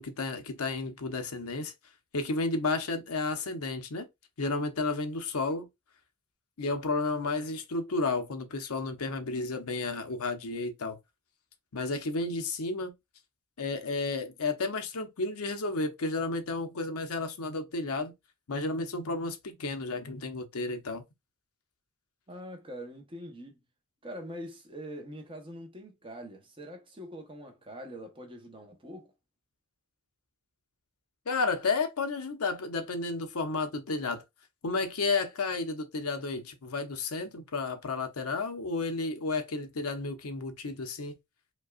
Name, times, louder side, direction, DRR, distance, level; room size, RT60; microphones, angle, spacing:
voice 1, 0.0-1.7 2.1-4.1 4.4-5.7 6.6-11.0 11.7-12.9 13.6-18.1 18.5-21.0 31.3-34.2 34.6-41.2, left 3 dB, 75° left, 0.8 m, -32 dB
voice 2, 22.3-23.6 24.0-29.1, equal, 25° right, 0.9 m, -43 dB
5.1 x 2.3 x 2.4 m
head